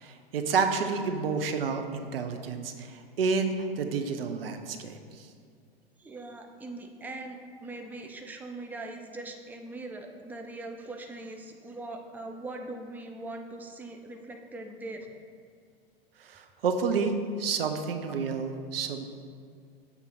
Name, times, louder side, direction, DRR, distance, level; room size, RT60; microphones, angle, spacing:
voice 1, 0.0-5.3 16.2-17.1 17.4-19.1, right 5 dB, 75° right, 6 dB, 0.7 m, -30 dB
voice 2, 6.0-15.2 18.1-18.2, right 2 dB, 5° right, 3 dB, 0.5 m, -41 dB
6.9 x 3.7 x 6.0 m, 2.2 s
hypercardioid pair, 95°, 29 cm